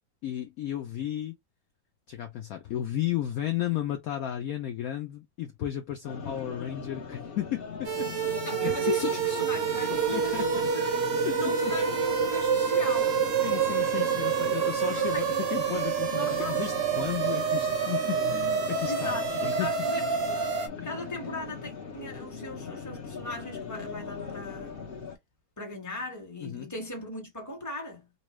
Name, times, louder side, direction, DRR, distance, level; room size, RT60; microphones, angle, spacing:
voice 1, 0.2-1.4 2.1-8.3 8.6-8.7 9.0-9.1 9.8-10.7 11.2-11.8 13.4-19.7 20.8-20.9 26.4-26.7, left 12 dB, 75° left, 0.8 m, -34 dB
sound 1, 6.0-25.2, left 6 dB, 40° left, 0.8 m, -40 dB
sound 2, 7.8-20.7, right 7 dB, 60° right, 0.6 m, -27 dB
voice 2, 8.4-11.0 11.4-13.2 14.9-15.4 16.1-16.7 18.9-20.4 20.8-24.8 25.6-28.0, left 2 dB, 10° left, 1.0 m, -38 dB
4.1 x 2.3 x 3.1 m
omnidirectional pair, 2.1 m